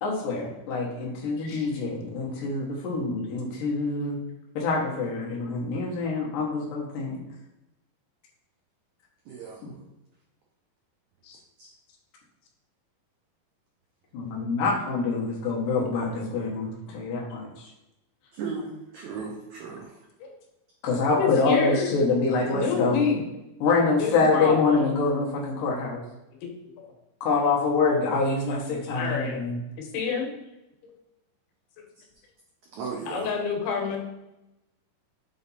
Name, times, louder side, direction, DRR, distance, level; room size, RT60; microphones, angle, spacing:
voice 1, 0.0-4.2 4.6-7.2 14.1-17.7 20.8-23.0 23.6-26.0 27.2-29.6, left 3 dB, 65° left, -3 dB, 2.6 m, -26 dB
voice 2, 1.4-1.7 5.4-5.5 11.2-11.4 20.2-20.3 21.1-21.9 22.5-23.2 24.0-25.0 26.4-26.5 28.9-29.4 29.8-30.3 30.8-30.9 33.1-34.0, left 6 dB, 90° left, 2 dB, 3.1 m, -28 dB
voice 3, 9.3-9.7 11.6-11.7 18.3-20.0 32.7-33.3, right 5 dB, 85° right, -1 dB, 1.6 m, -36 dB
7.9 x 3.4 x 4.1 m, 0.92 s
omnidirectional pair, 4.4 m